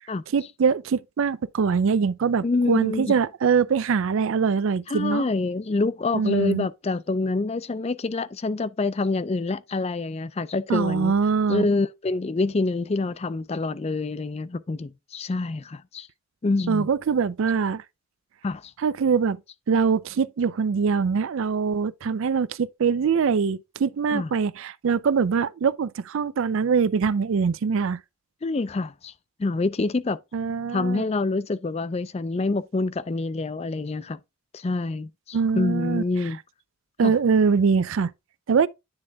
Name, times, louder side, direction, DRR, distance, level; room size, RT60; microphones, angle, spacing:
voice 1, 0.3-5.2 6.1-6.7 10.7-11.7 16.7-17.8 18.8-19.4 19.7-28.0 30.3-31.1 35.3-36.0 37.0-38.1 38.5-38.7, right 5 dB, 60° right, 0.4 m, -23 dB
voice 2, 2.4-3.1 4.9-11.1 11.5-16.1 16.4-16.9 18.4-18.7 24.1-24.3 28.4-29.1 29.4-30.2 30.7-34.2 34.5-36.4 37.0-37.1, left 3 dB, 30° left, 0.3 m, -26 dB
9.7 x 3.7 x 3.5 m
head